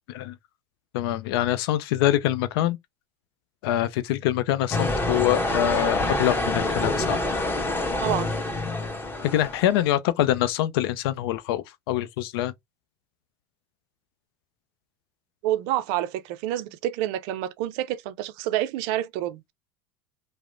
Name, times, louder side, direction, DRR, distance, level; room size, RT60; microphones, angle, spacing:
voice 1, 0.9-2.8 3.6-7.2 9.2-12.5, left 13 dB, 75° left, 0.4 m, -24 dB
sound 1, 4.7-9.8, left 2 dB, 15° left, 1.1 m, -26 dB
voice 2, 8.0-8.4 15.4-19.4, right 13 dB, 65° right, 0.4 m, -28 dB
2.9 x 2.0 x 2.4 m
hypercardioid pair, 90°, 13 cm